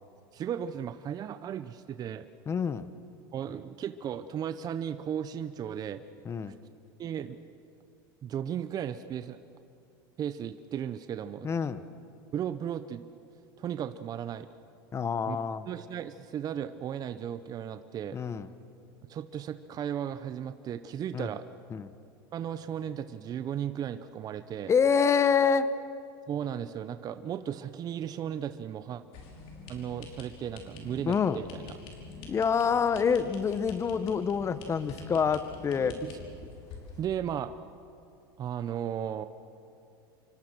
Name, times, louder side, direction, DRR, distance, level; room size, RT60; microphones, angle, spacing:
voice 1, 0.3-2.3 3.3-6.0 7.0-7.4 8.2-9.4 10.2-11.5 12.3-13.1 13.6-14.5 15.3-15.4 15.7-18.2 19.1-21.5 22.3-24.7 26.3-29.0 29.7-31.7 36.0-36.1 36.4-36.5 37.0-37.5 38.4-39.3, right 9 dB, 35° right, 11 dB, 0.8 m, -35 dB
voice 2, 2.5-2.9 6.2-6.6 11.4-11.8 14.9-15.7 18.1-18.5 21.1-21.3 21.7-21.9 24.7-25.7 31.1-31.4 32.3-36.0, left 6 dB, 25° left, 14 dB, 1.1 m, -27 dB
sound 1, 29.1-37.0, left 3 dB, 50° left, 5.4 m, -46 dB
28.0 x 24.0 x 6.3 m, 2.7 s
supercardioid pair, 115°, 12 cm